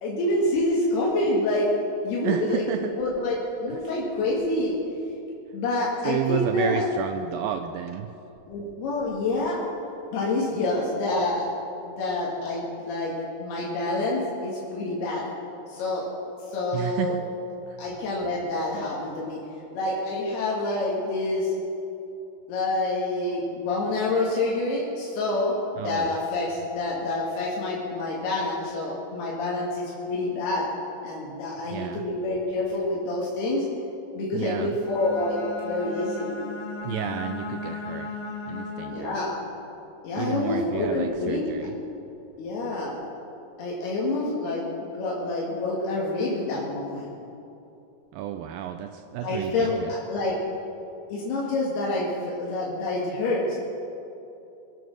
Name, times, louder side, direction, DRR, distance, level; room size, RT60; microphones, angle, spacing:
voice 1, 0.0-1.7 2.0-4.8 5.5-6.9 8.5-9.6 10.1-11.5 11.8-15.2 15.7-16.1 16.4-17.1 17.8-19.4 19.7-21.5 22.5-30.7 31.0-33.7 34.1-36.3 38.9-39.4 40.0-41.5 42.4-42.9 43.6-47.1 49.2-50.4 51.1-53.5, left 2 dB, 90° left, -5 dB, 4.0 m, -27 dB
voice 2, 2.2-2.9 6.0-8.1 16.7-17.2 17.7-17.8 25.8-26.1 31.7-32.0 34.3-34.7 36.8-38.1 38.5-39.2 40.2-41.7 48.1-49.9, right 11 dB, 80° right, 7 dB, 2.1 m, -31 dB
Bowed string instrument, 34.8-39.2, left 3 dB, 70° left, 3.6 m, -36 dB
23.0 x 9.3 x 6.3 m, 2.8 s
omnidirectional pair, 4.4 m